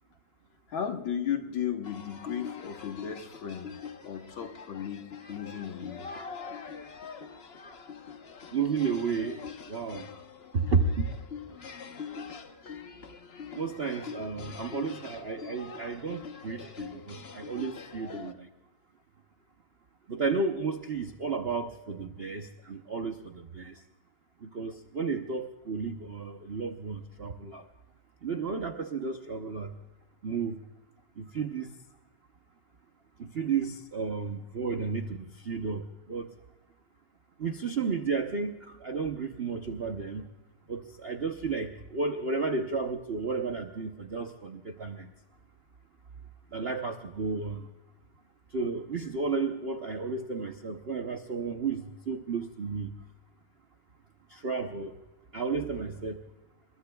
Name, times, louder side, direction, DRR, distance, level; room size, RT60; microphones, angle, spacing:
voice 1, 0.7-3.7 4.1-6.0, left 8 dB, 75° left, 4 dB, 2.1 m, -35 dB
sound 1, 1.8-18.3, left 6 dB, 40° left, 0.9 m, -44 dB
voice 2, 8.5-9.4 9.7-10.1 10.5-11.1 13.5-18.5 20.1-23.8 24.4-27.6 28.2-29.7 30.2-30.6 31.2-31.7 33.2-36.3 37.4-40.3 40.7-45.1 46.5-47.7 48.5-52.9 54.3-55.0 55.3-56.2, right 4 dB, 45° right, 5 dB, 0.8 m, -32 dB
27.5 x 22.5 x 2.3 m, 1.0 s
omnidirectional pair, 2.2 m